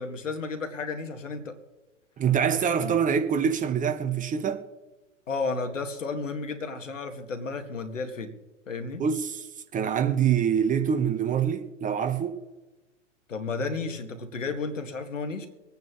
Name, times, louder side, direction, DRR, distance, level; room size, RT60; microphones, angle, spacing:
voice 1, 0.0-1.6 2.8-2.9 5.3-8.4 8.7-9.0 13.3-15.5, left 4 dB, 80° left, 2.0 m, -32 dB
voice 2, 2.2-4.6 9.0-9.5 9.7-12.4, right 7 dB, 20° right, 1.2 m, -25 dB
24.5 x 9.2 x 3.1 m
figure-of-eight pair, 100°, 38 cm